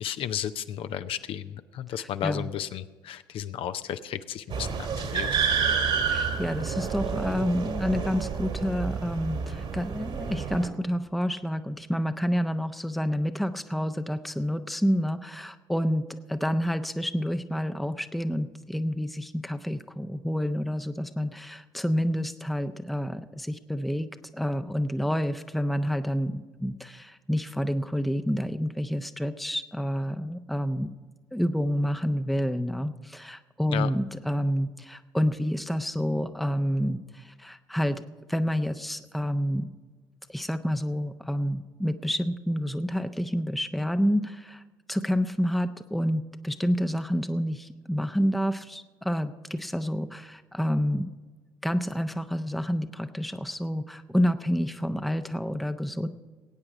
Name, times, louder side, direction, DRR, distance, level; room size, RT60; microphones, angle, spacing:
voice 1, 0.0-5.3 33.7-33.9, left 10 dB, 55° left, 11 dB, 0.6 m, -33 dB
voice 2, 2.0-2.5 6.1-24.1 24.3-30.9 31.3-38.0 38.3-39.7 40.3-44.6 44.9-51.1 51.6-56.1, equal, ahead, 9 dB, 0.7 m, -28 dB
sound 1, 4.5-10.7, right 6 dB, 55° right, 2.2 m, -29 dB
20.0 x 8.9 x 4.9 m, 1.4 s
hypercardioid pair, 55°, 11 cm